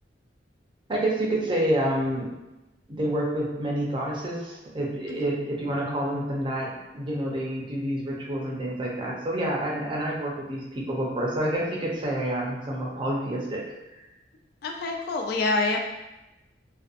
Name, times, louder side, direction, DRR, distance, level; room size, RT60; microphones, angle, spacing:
voice 1, 0.9-2.3 2.9-13.6 14.0-14.1, right 1 dB, 30° right, -3 dB, 0.5 m, -28 dB
voice 2, 14.6-15.8, left 3 dB, 60° left, 2 dB, 0.3 m, -26 dB
2.6 x 2.1 x 2.4 m, 1.0 s
head